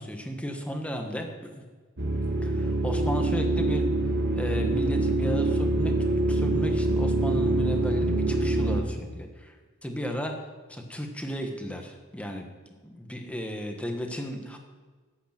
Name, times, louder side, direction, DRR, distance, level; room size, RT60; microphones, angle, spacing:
voice 1, 0.0-1.6 2.4-3.9 4.3-9.6 9.8-10.3 10.7-12.5 12.8-14.6, equal, 5° left, 3 dB, 1.4 m, -34 dB
sound 1, 2.0-8.8, right 2 dB, 55° right, 1.6 m, -25 dB
15.0 x 8.4 x 6.0 m, 1.4 s
head